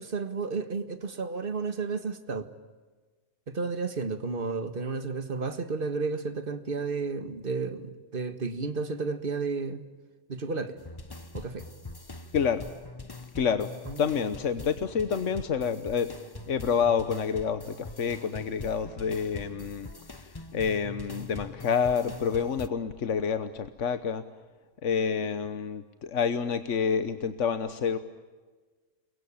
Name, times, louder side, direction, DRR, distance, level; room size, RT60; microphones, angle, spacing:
voice 1, 0.0-2.5 3.5-9.8 10.3-10.8 11.3-11.6 13.9-14.2, right 4 dB, 50° right, 1.8 m, -32 dB
sound 1, 10.8-22.7, left 3 dB, 20° left, 1.0 m, -43 dB
voice 2, 12.3-12.6 13.3-13.7 14.0-16.1 16.5-19.9 20.5-24.2 24.8-28.0, left 6 dB, 80° left, 1.4 m, -28 dB
29.0 x 22.5 x 8.7 m
omnidirectional pair, 1.2 m